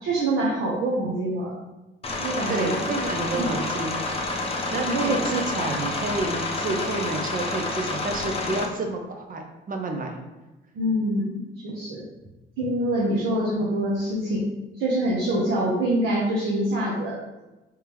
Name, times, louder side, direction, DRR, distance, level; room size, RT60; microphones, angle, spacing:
voice 1, 0.0-1.5 2.2-2.8 3.4-3.6 4.9-5.1 10.7-12.0 12.6-14.4 14.8-17.2, right 1 dB, 85° right, -5 dB, 0.9 m, -25 dB
sound 1, 2.0-8.7, left 2 dB, 30° left, 0.7 m, -29 dB
voice 2, 2.5-4.0 4.7-10.2, right 2 dB, 45° right, 4 dB, 0.7 m, -29 dB
3.5 x 3.4 x 3.0 m, 1.0 s
cardioid pair, 90°, 20 cm